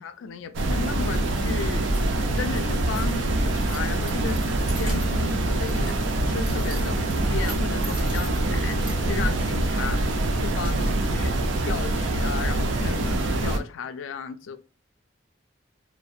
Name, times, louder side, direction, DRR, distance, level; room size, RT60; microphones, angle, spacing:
voice 1, 0.0-1.9 2.3-11.4 11.7-14.6, left 5 dB, 85° left, 0.3 m, -35 dB
sound 1, 0.5-13.6, right 1 dB, 75° right, 0.4 m, -25 dB
sound 2, 1.9-5.4, right 2 dB, 60° right, 0.9 m, -46 dB
Keys jangling, 3.3-11.8, right 2 dB, 25° right, 0.6 m, -45 dB
2.6 x 2.0 x 2.3 m
head